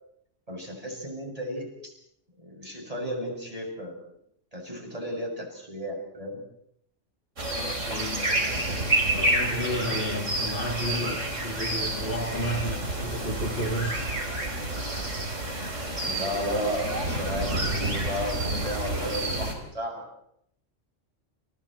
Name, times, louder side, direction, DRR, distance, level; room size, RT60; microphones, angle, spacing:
voice 1, 0.5-1.9 2.4-4.0 4.5-6.4 15.9-20.1, equal, 30° right, 7.4 m, -34 dB
sound 1, 7.4-19.5, right 1 dB, 90° right, 4.5 m, -29 dB
voice 2, 7.5-8.3 9.1-14.1, equal, 50° left, 2.7 m, -32 dB
30.0 x 30.0 x 4.5 m
omnidirectional pair, 1.3 m